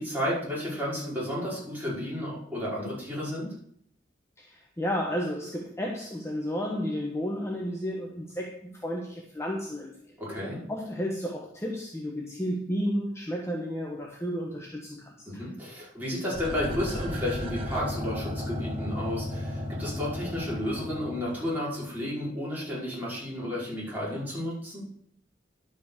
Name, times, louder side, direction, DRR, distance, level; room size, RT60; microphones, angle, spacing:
voice 1, 0.0-3.6 10.2-10.6 15.3-24.8, left 1 dB, 10° right, -7 dB, 5.2 m, -32 dB
voice 2, 4.4-9.9 10.7-15.4, equal, 15° left, 0 dB, 1.2 m, -32 dB
sound 1, 16.3-21.5 21.9-22.0, left 1 dB, 30° right, 1.5 m, -34 dB
11.0 x 5.7 x 6.7 m, 0.66 s
head